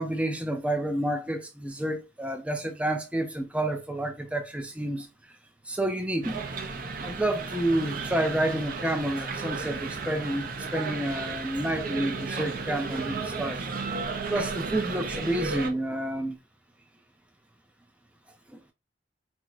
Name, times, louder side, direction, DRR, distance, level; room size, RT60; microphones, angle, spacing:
voice 1, 0.0-5.1 5.7-6.4 7.0-13.7 14.3-16.4 18.5-18.6, right 1 dB, 5° right, 0.5 m, -29 dB
sound 1, 6.2-15.7, right 4 dB, 50° right, 0.6 m, -34 dB
4.4 x 2.1 x 3.9 m
head